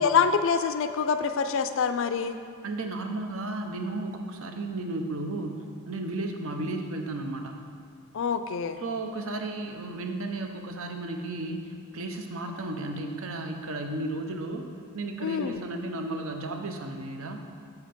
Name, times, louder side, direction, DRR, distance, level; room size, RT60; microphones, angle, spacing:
voice 1, 0.0-2.4 8.1-8.8 15.2-15.6, left 6 dB, 60° left, 9 dB, 0.4 m, -25 dB
voice 2, 2.6-5.6 5.9-7.5 8.8-11.6 11.9-14.7 14.9-17.4, right 2 dB, 65° right, 4 dB, 0.7 m, -33 dB
7.2 x 4.5 x 5.1 m, 2.2 s
head